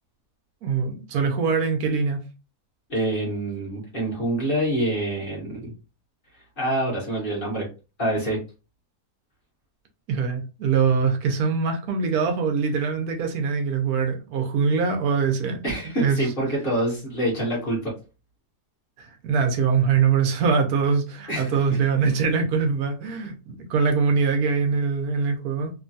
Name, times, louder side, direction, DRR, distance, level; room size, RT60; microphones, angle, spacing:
voice 1, 0.6-2.2 10.1-16.2 19.0-25.7, right 5 dB, 75° right, 1.1 m, -23 dB
voice 2, 2.9-5.7 6.6-7.7 8.0-8.4 15.6-17.9 21.3-21.6, right 1 dB, 40° left, 1.0 m, -26 dB
3.0 x 2.2 x 2.6 m
omnidirectional pair, 1.6 m